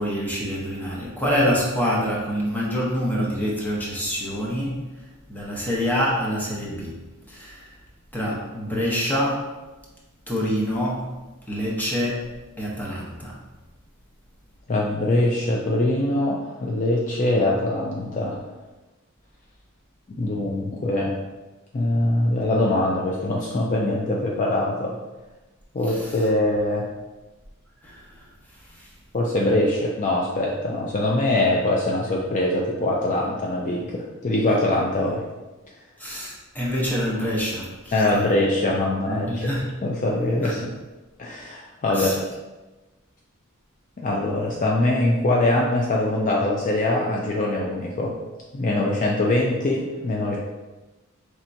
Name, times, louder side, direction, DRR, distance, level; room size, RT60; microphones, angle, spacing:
voice 1, 0.0-4.9 5.3-7.7 8.1-9.6 10.3-11.2 11.5-13.4 25.8-26.3 27.8-28.9 36.0-38.3 39.0-39.7 40.4-40.5 41.9-42.2, equal, 10° left, -4 dB, 0.8 m, -26 dB
voice 2, 14.7-18.4 20.1-21.2 21.7-25.0 25.7-26.9 29.1-35.2 37.9-39.6 39.8-40.7 41.2-42.2 44.0-48.2 48.5-50.4, left 1 dB, 35° left, -2 dB, 0.4 m, -23 dB
4.3 x 3.3 x 2.6 m, 1.1 s
head